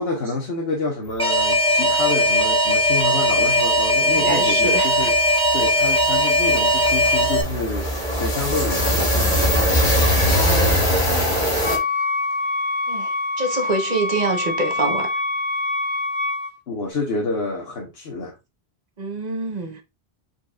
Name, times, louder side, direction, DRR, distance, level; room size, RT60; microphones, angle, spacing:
voice 1, 0.0-5.2 5.5-9.7 16.7-18.4, left 3 dB, 75° left, 1.3 m, -28 dB
Alarm, 1.2-7.4, equal, 5° left, 0.7 m, -19 dB
sound 1, 3.4-3.5 3.7-3.9 4.2-11.8, equal, 50° left, 1.9 m, -22 dB
voice 2, 4.0-5.1 9.9-10.8 12.9-15.1 19.0-19.8, right 3 dB, 45° right, 1.1 m, -26 dB
Wind instrument woodwind instrument, 11.6-16.5, left 3 dB, 10° right, 1.0 m, -25 dB
4.9 x 4.5 x 2.3 m
omnidirectional pair, 1.0 m